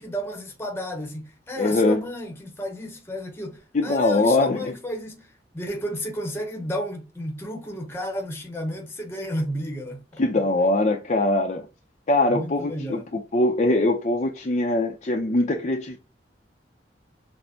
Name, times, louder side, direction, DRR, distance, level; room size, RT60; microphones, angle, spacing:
voice 1, 0.0-10.2 12.3-13.1, equal, 15° left, 0.8 m, -32 dB
voice 2, 1.6-2.0 3.7-4.7 10.2-11.7 12.1-16.0, left 2 dB, 40° left, 0.5 m, -22 dB
6.1 x 2.1 x 2.7 m
head